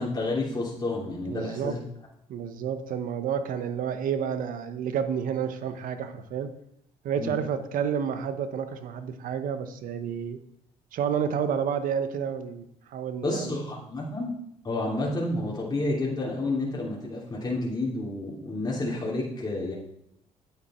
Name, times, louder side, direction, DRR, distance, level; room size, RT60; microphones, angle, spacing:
voice 1, 0.0-1.8 7.2-7.3 13.2-14.3 14.6-19.8, left 2 dB, 25° left, -5 dB, 3.1 m, -30 dB
voice 2, 1.3-1.8 2.3-6.5 7.0-10.4 10.9-13.6, right 7 dB, 70° right, 10 dB, 1.0 m, -30 dB
9.4 x 8.2 x 4.4 m, 0.75 s
supercardioid pair, 70°, 15 cm